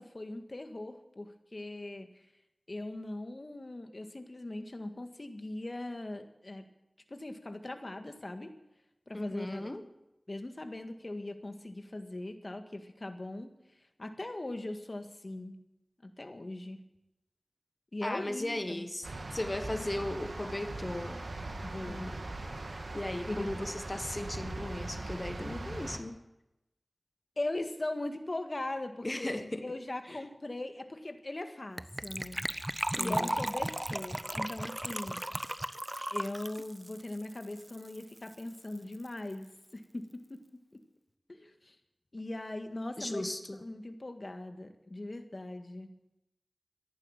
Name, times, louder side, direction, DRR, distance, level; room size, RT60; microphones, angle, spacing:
voice 1, 0.0-2.1 2.7-6.7 7.1-8.5 9.1-9.7 10.3-13.5 14.0-15.6 16.0-16.8 17.9-18.9 21.6-22.1 23.3-23.5 27.4-29.3 29.6-32.4 32.9-35.2 36.1-40.4 40.7-40.8 41.3-41.8 42.1-43.2 43.6-45.9, left 2 dB, 50° left, 7 dB, 1.8 m, -40 dB
voice 2, 9.1-9.8 18.0-21.2 21.9-22.2 22.9-26.2 29.0-29.6 30.1-30.2 32.9-33.4 43.0-43.6, left 1 dB, 35° left, 9 dB, 1.5 m, -37 dB
sound 1, 19.0-26.0, right 2 dB, 85° right, 2.0 m, -40 dB
Gurgling / Trickle dribble / Fill (with liquid), 31.8-38.0 38.3-38.4 38.5-38.8 39.1-39.2, right 1 dB, 20° right, 0.7 m, -36 dB
14.5 x 11.0 x 9.0 m, 0.91 s
wide cardioid pair, 45°, 0 cm